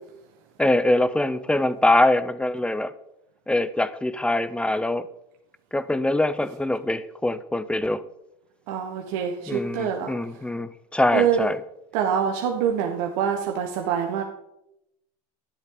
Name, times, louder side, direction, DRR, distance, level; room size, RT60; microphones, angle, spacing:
voice 1, 0.6-2.9 3.5-5.1 5.7-8.0 9.5-11.6, left 1 dB, 5° left, 14 dB, 0.7 m, -23 dB
voice 2, 8.7-10.4 11.1-11.4 11.9-14.2, right 8 dB, 75° right, 2 dB, 1.4 m, -25 dB
12.0 x 10.5 x 3.9 m, 0.82 s
supercardioid pair, 110°, 18 cm